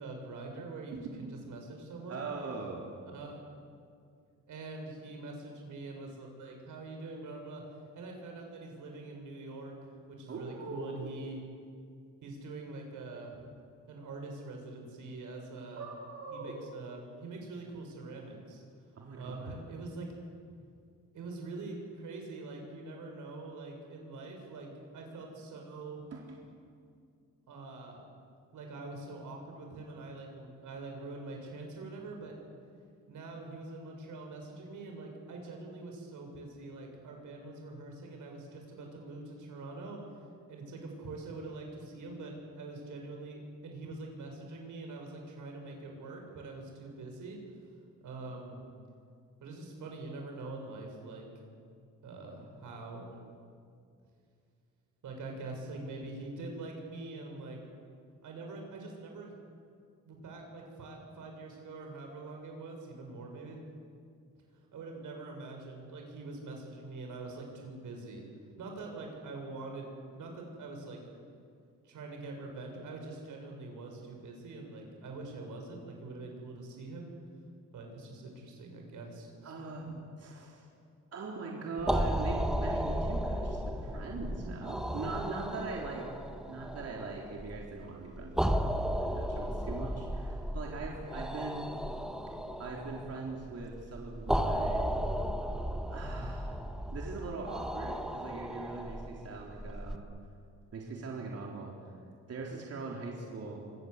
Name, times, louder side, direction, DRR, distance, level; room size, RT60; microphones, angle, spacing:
voice 1, 0.0-2.2 3.0-3.5 4.5-7.7 7.9-11.4 12.2-13.5 13.9-15.9 16.3-18.6 19.1-20.1 21.1-26.0 27.5-28.0 28.5-32.4 33.1-40.0 40.5-47.4 48.0-48.6 49.4-51.3 52.0-53.2 55.0-57.6 58.2-59.4 60.1-63.6 64.7-68.2 68.6-69.9 70.1-71.0 71.8-77.1 77.7-79.5, right 3 dB, 90° right, 2 dB, 6.9 m, -44 dB
voice 2, 2.1-2.9 10.3-11.1 15.8-16.5 19.0-19.5 26.1-26.2 79.4-80.7 81.1-86.1 86.5-91.8 92.6-95.0 95.9-96.5 96.9-100.1 100.7-101.7 102.3-103.7, right 3 dB, 55° right, -2 dB, 3.8 m, -41 dB
sound 1, 81.8-100.0, equal, ahead, 1.3 m, -35 dB
27.0 x 25.0 x 8.3 m, 2.3 s
wide cardioid pair, 150°, 30 cm